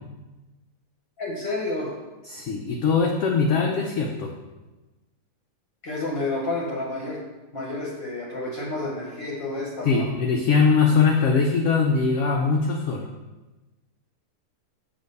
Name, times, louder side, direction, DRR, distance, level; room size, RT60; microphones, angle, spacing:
voice 1, 1.2-1.9 5.8-7.2 7.5-10.1, left 2 dB, 45° left, -3 dB, 1.0 m, -30 dB
voice 2, 2.3-4.3 9.8-13.0, left 5 dB, 70° left, 1 dB, 0.7 m, -21 dB
6.6 x 2.9 x 5.3 m, 1.1 s
omnidirectional pair, 1.7 m